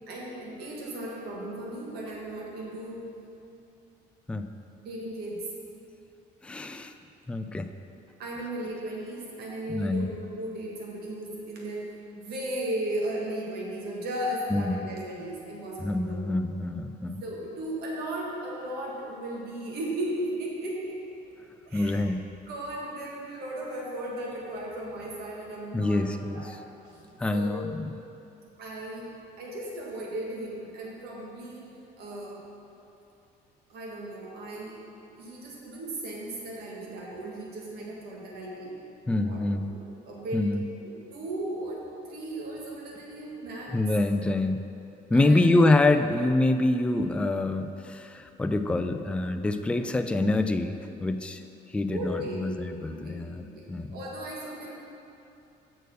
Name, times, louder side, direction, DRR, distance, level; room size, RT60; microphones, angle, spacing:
voice 1, 0.1-3.0 4.8-5.5 8.2-16.2 17.2-21.0 21.7-22.0 22.5-27.6 28.6-29.1 29.4-31.7 32.0-32.4 33.7-34.8 35.2-38.8 39.2-39.4 39.7-40.5 40.8-43.8 45.1-45.4 51.9-52.6 52.8-53.6 53.9-54.8, right 1 dB, 70° right, -3 dB, 1.6 m, -36 dB
voice 2, 6.4-6.9 7.3-7.7 9.7-10.1 14.5-14.8 15.8-17.2 21.7-22.2 25.7-26.4 27.2-27.9 39.1-39.7 40.3-40.6 43.7-44.6 45.1-51.4 51.7-54.0, left 2 dB, 5° left, 7 dB, 0.3 m, -26 dB
6.5 x 4.5 x 6.4 m, 2.8 s
cardioid pair, 110°, 17 cm